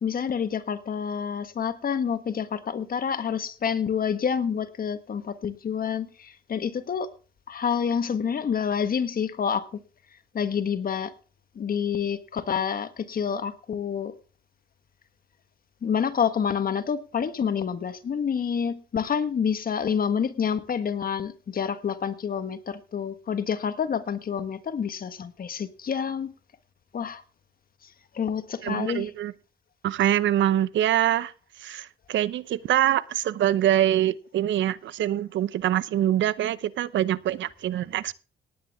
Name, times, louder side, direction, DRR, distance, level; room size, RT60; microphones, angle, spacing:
voice 1, 0.0-7.1 7.5-9.8 10.3-11.1 11.5-14.1 15.8-26.3 26.9-27.2 28.1-29.1, left 7 dB, 45° left, 1.5 m, -28 dB
voice 2, 28.6-29.3 29.8-31.3 31.6-38.1, right 12 dB, 70° right, 0.8 m, -24 dB
18.0 x 9.3 x 3.6 m
cardioid pair, 90°, 20 cm